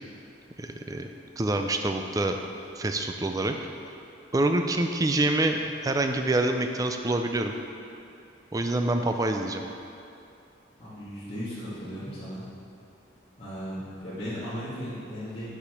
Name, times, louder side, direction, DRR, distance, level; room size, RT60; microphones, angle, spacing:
voice 1, 0.6-1.1 1.4-2.4 2.8-3.5 4.3-7.5 8.5-9.6, right 2 dB, 20° right, 5 dB, 0.4 m, -26 dB
voice 2, 10.8-12.5 13.4-15.5, equal, 30° left, -15 dB, 1.9 m, -36 dB
6.9 x 4.9 x 5.8 m, 2.6 s
head